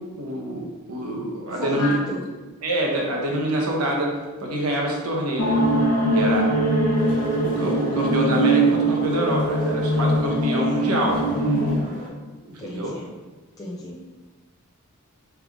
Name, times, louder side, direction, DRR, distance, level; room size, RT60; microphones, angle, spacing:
voice 1, 0.2-2.0 2.6-4.1 4.4-5.6 6.1-6.5 7.4-11.2 12.5-12.9, right 1 dB, 85° right, -1 dB, 1.0 m, -26 dB
voice 2, 1.5-2.3 12.6-13.1 13.6-14.0, left 2 dB, 15° left, -5 dB, 0.4 m, -32 dB
sound 1, 5.4-11.8, right 1 dB, 90° left, 0.8 m, -21 dB
sound 2, 7.0-12.1, right 2 dB, 40° right, 0.8 m, -37 dB
3.6 x 3.5 x 3.5 m, 1.3 s
head